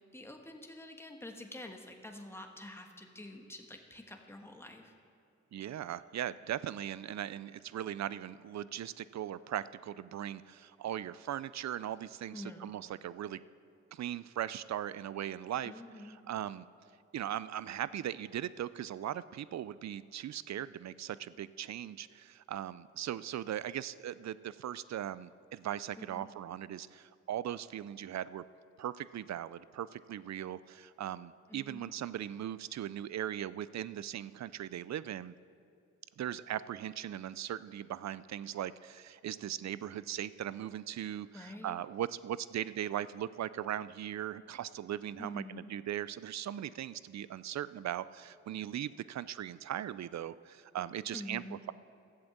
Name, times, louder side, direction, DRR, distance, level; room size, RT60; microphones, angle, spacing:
voice 1, 0.1-4.9 12.3-12.7 15.6-16.2 26.0-26.3 31.5-32.0 41.3-41.8 45.2-45.8 51.1-51.6, left 1 dB, 10° left, 3 dB, 1.4 m, -47 dB
voice 2, 5.5-13.4 13.9-16.7 17.1-28.4 28.8-35.3 36.2-51.7, right 11 dB, 65° right, 17 dB, 0.4 m, -39 dB
13.0 x 7.9 x 7.2 m, 2.5 s
cardioid pair, 65°, 30 cm